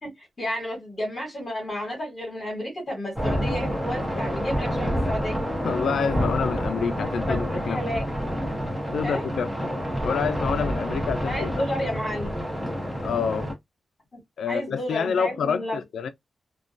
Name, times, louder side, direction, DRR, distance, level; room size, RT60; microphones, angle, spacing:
voice 1, 0.0-5.4 7.3-8.0 9.0-9.3 11.3-12.3 14.1-14.2 14.5-15.8, left 1 dB, 30° left, 1.1 m, -32 dB
sound 1, 3.2-13.5, equal, 10° right, 0.6 m, -28 dB
voice 2, 5.6-7.8 8.9-9.7 10.0-11.6 13.0-13.5 14.4-16.1, left 6 dB, 75° left, 0.4 m, -27 dB
2.3 x 2.2 x 2.5 m
wide cardioid pair, 175°, 0 cm